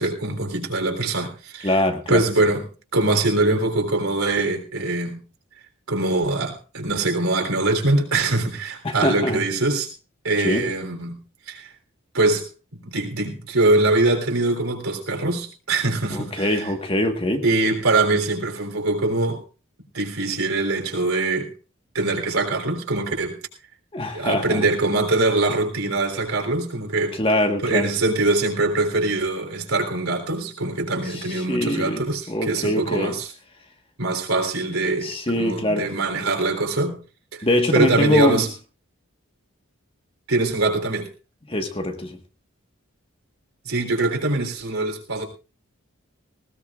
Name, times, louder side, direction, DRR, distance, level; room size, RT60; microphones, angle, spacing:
voice 1, 0.0-1.8 2.1-2.7 2.9-5.2 5.9-9.9 10.2-11.7 12.1-12.5 12.8-16.7 17.4-19.4 19.9-21.5 21.9-23.4 24.1-27.2 27.6-33.3 34.0-37.0 37.3-37.4 37.7-38.5 40.3-41.1 43.7-45.2, right 2 dB, 80° right, 3.5 m, -23 dB
voice 2, 1.6-2.2 8.8-9.4 10.4-10.7 16.1-17.4 23.9-24.6 27.1-27.9 31.0-33.1 35.0-35.9 37.4-38.5 41.5-42.2, left 1 dB, 25° left, 1.5 m, -23 dB
19.5 x 17.0 x 2.4 m
head